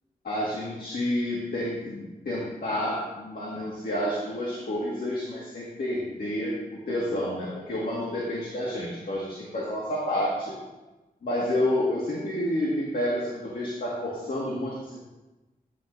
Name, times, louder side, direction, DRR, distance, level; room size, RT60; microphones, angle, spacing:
voice 1, 0.2-10.5 11.2-15.0, left 1 dB, 70° left, -5 dB, 1.8 m, -29 dB
9.8 x 9.2 x 2.6 m, 1.1 s
wide cardioid pair, 75°, 16 cm